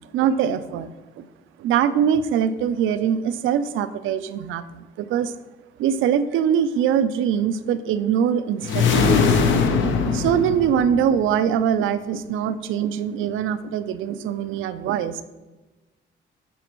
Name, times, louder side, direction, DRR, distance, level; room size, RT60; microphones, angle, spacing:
voice 1, 0.1-0.9 1.6-5.3 5.8-9.4 9.7-15.2, right 8 dB, 85° right, 12 dB, 0.4 m, -23 dB
sound 1, 8.6-11.2, left 5 dB, 70° left, 0.6 m, -20 dB
8.1 x 4.2 x 3.0 m, 1.1 s
cardioid pair, 90°, 20 cm